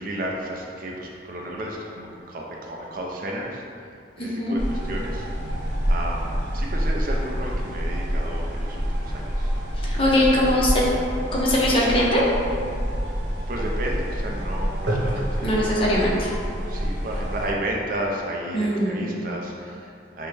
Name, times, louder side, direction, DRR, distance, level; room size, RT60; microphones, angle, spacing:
voice 1, 0.0-3.6 4.2-5.3 5.9-9.5 10.1-10.6 13.5-15.7 16.7-20.3, right 1 dB, 50° right, -1 dB, 0.5 m, -32 dB
voice 2, 4.2-4.6 9.8-10.8 11.3-12.2 15.4-16.3 18.5-19.1, left 1 dB, 30° left, -5 dB, 0.7 m, -21 dB
sound 1, 4.6-17.5, equal, 85° right, 1.0 m, -27 dB
6.1 x 2.2 x 3.2 m, 2.4 s
head